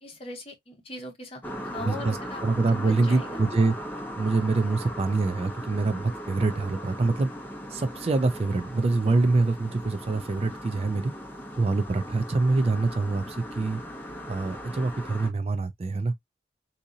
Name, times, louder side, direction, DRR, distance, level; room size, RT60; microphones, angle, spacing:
voice 1, 0.0-3.4, left 1 dB, 30° left, 1.1 m, -40 dB
sound 1, 1.4-15.3, equal, 10° left, 0.8 m, -38 dB
voice 2, 1.7-3.8 4.2-7.3 7.7-11.1 11.6-13.8 14.3-16.1, right 3 dB, 35° right, 0.4 m, -25 dB
3.7 x 2.8 x 2.6 m
head